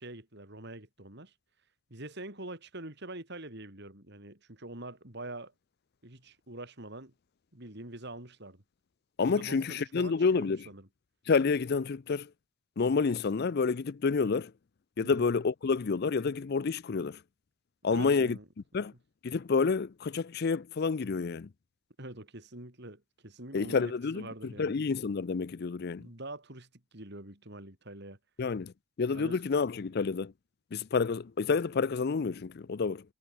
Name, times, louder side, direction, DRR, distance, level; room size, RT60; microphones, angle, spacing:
voice 1, 0.0-1.3 1.9-5.5 6.0-7.1 7.5-8.6 9.2-10.9 15.0-15.3 17.9-18.5 22.0-24.8 26.0-28.2 29.1-29.4 29.8-30.1, right 2 dB, 50° right, 3.9 m, -45 dB
voice 2, 9.2-10.6 11.3-12.3 12.8-14.5 15.0-17.2 17.8-18.4 18.7-18.9 19.2-21.5 23.5-24.3 24.6-26.0 28.4-28.7 29.0-30.3 30.7-33.0, left 4 dB, 50° left, 0.4 m, -29 dB
head